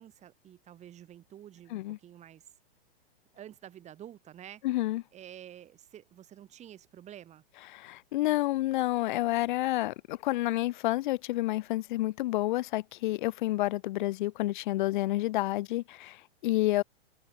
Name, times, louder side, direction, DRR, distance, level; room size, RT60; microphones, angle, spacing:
voice 1, 0.0-2.5 3.3-4.6 5.1-7.4, right 11 dB, 20° right, 5.7 m, -49 dB
voice 2, 4.6-5.0 7.7-16.8, left 17 dB, 50° left, 0.9 m, -29 dB
hypercardioid pair, 145°, 31 cm